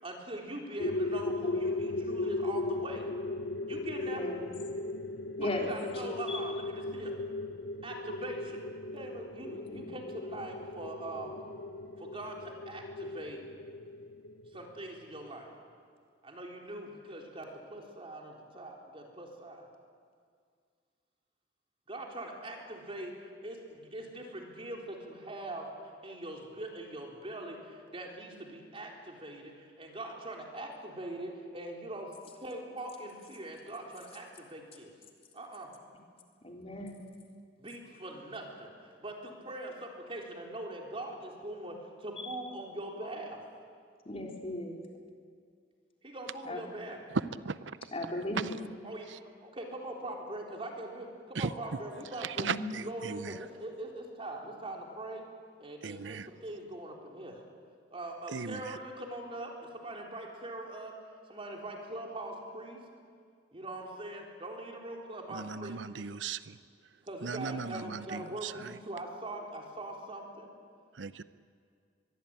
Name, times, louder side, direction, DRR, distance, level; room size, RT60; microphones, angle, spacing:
voice 1, 0.0-3.1 3.7-4.3 5.4-7.2 7.8-8.6 8.9-11.3 12.0-13.4 14.5-15.5 16.2-19.7 21.9-25.7 26.0-32.1 32.4-34.9 35.3-35.7 37.6-43.4 46.0-47.0 48.8-52.5 52.8-55.2 55.6-57.5 57.9-60.9 61.3-62.8 63.5-65.8 67.0-70.5, right 1 dB, 30° right, 0 dB, 3.9 m, -42 dB
sound 1, 0.8-15.0, left 2 dB, 70° left, 0.8 m, -37 dB
voice 2, 4.1-4.4 5.4-5.7 6.3-6.4 9.7-9.8 36.4-37.0 42.2-42.3 44.1-44.8 46.5-46.6 47.9-48.5 52.4-52.6, left 1 dB, 35° left, 1 dB, 3.6 m, -36 dB
voice 3, 52.2-53.3 55.8-56.3 58.3-58.6 65.3-66.6 67.2-68.7 71.0-71.2, right 5 dB, 85° right, 14 dB, 0.7 m, -37 dB
24.0 x 22.0 x 8.9 m, 2.1 s
head